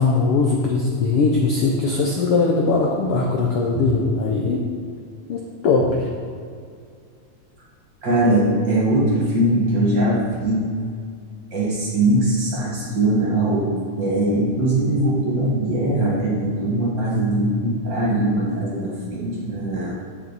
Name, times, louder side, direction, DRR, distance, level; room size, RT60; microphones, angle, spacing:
voice 1, 0.0-4.6 5.3-6.1, left 4 dB, 75° left, 0 dB, 1.3 m, -20 dB
voice 2, 8.0-10.7 11.5-13.7 14.0-19.9, right 1 dB, 45° right, -4 dB, 1.9 m, -21 dB
9.8 x 6.9 x 4.0 m, 2.2 s
omnidirectional pair, 3.4 m